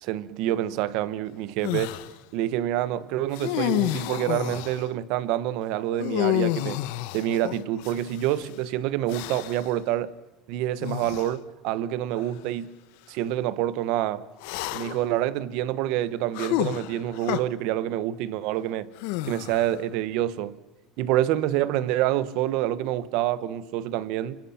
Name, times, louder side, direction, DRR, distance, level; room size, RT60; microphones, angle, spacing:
voice 1, 0.0-1.9 2.3-6.8 7.1-10.1 10.5-12.7 13.1-14.3 14.7-18.9 19.2-20.6 21.0-24.4, right 13 dB, 70° right, 1.2 m, -27 dB
sound 1, 1.6-2.1 3.3-4.9 6.0-8.3 9.1-9.7 10.8-11.3 12.2-12.3 14.4-15.1 16.3-17.4 19.0-19.8, left 16 dB, 80° left, 1.0 m, -29 dB
26.5 x 26.0 x 5.9 m
cardioid pair, 140°, 0 cm